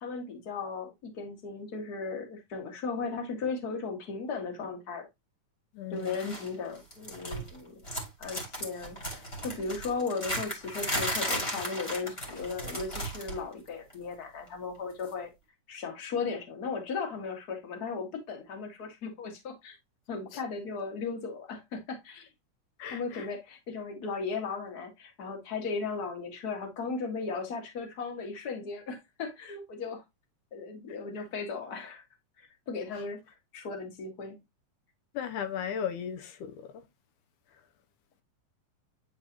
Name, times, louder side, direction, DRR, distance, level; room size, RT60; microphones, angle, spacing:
voice 1, 0.0-5.1 5.9-7.8 8.2-15.3 15.7-19.8 20.1-22.3 22.9-30.0 30.5-32.0 32.4-34.4, left 4 dB, 35° left, 1.8 m, -36 dB
voice 2, 5.7-6.2 20.3-20.4 22.8-23.3 35.1-36.8, left 8 dB, 85° left, 2.2 m, -36 dB
sound 1, 6.1-6.5 6.8-7.6 7.8-13.4 13.7-13.9 15.0-15.1, equal, 20° left, 2.2 m, -35 dB
9.4 x 4.0 x 2.9 m
omnidirectional pair, 3.6 m